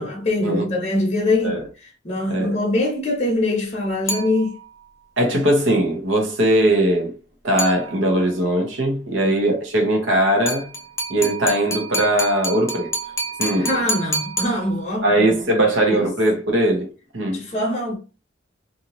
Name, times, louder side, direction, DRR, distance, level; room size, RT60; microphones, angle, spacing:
voice 1, 0.0-1.6 2.0-4.5 9.2-9.3 13.6-15.0 15.9-16.0 17.3-18.0, left 2 dB, 35° left, 0.8 m, -23 dB
sound 1, 4.1-4.9 7.6-8.3 10.5-15.1, right 1 dB, 15° left, 0.4 m, -29 dB
voice 2, 5.2-7.1 7.4-10.7 11.1-12.9 13.4-13.7 15.0-16.9 17.1-17.4, right 1 dB, 80° right, 1.1 m, -20 dB
2.6 x 2.6 x 2.9 m
head